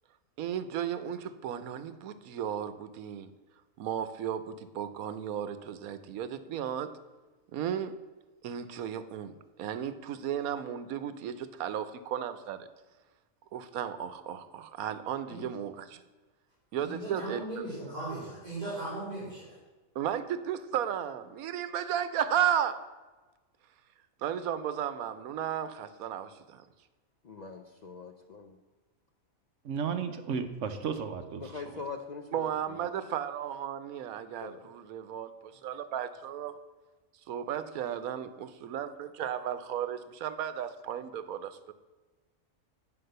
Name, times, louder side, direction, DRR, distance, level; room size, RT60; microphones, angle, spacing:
voice 1, 0.4-3.3 3.8-7.0 7.5-8.0 8.4-9.3 9.6-12.7 13.5-16.0 16.7-17.6 20.0-22.8 24.2-26.6 32.3-36.5 37.3-41.7, right 9 dB, 85° right, 11 dB, 1.1 m, -34 dB
voice 2, 16.8-19.5, right 2 dB, 30° right, -8 dB, 3.0 m, -38 dB
voice 3, 27.2-28.6 31.4-33.0 34.4-34.6, left 4 dB, 75° left, 4 dB, 0.4 m, -42 dB
voice 4, 29.6-31.8, right 6 dB, 65° right, 8 dB, 1.0 m, -34 dB
7.9 x 5.3 x 6.6 m, 1.2 s
omnidirectional pair, 1.5 m